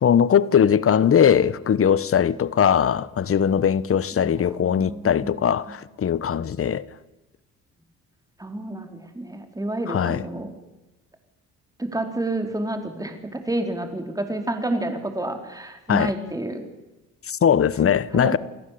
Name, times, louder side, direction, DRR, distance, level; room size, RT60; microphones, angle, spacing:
voice 1, 0.0-6.9 9.9-10.2 15.9-16.1 17.3-18.4, left 8 dB, 45° left, 1.2 m, -20 dB
voice 2, 4.2-5.3 5.7-5.8 8.4-10.5 11.8-16.6 18.1-18.4, right 1 dB, 10° right, 4.6 m, -29 dB
29.0 x 18.0 x 8.7 m
cardioid pair, 90°, 30 cm